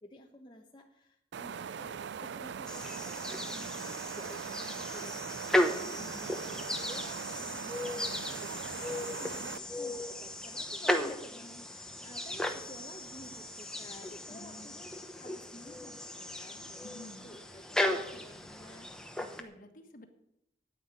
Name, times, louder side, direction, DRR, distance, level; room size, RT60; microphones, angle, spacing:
voice 1, 0.0-6.3 6.8-14.9 15.2-18.9, left 1 dB, 25° left, 1 dB, 0.9 m, -52 dB
sound 1, 1.3-9.6, right 7 dB, 80° right, 0.4 m, -41 dB
sound 2, 2.7-19.4, left 1 dB, 5° left, 0.9 m, -36 dB
voice 2, 5.8-6.2 12.2-12.4 14.3-14.7 16.8-17.3 19.3-20.1, left 1 dB, 50° left, 6 dB, 1.5 m, -51 dB
9.5 x 9.4 x 8.1 m, 0.79 s
head